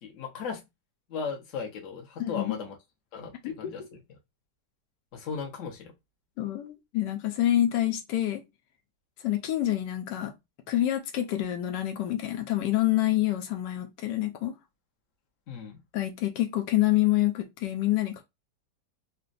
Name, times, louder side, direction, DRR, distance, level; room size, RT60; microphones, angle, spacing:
voice 1, 0.0-0.6 1.1-2.8 3.1-4.2 5.1-5.9 15.5-15.8, left 5 dB, 55° left, 1.1 m, -37 dB
voice 2, 2.2-2.6 3.4-3.7 6.4-8.4 9.2-10.3 10.7-14.5 15.9-18.2, left 14 dB, 85° left, 1.2 m, -27 dB
3.9 x 2.2 x 2.5 m
omnidirectional pair, 1.9 m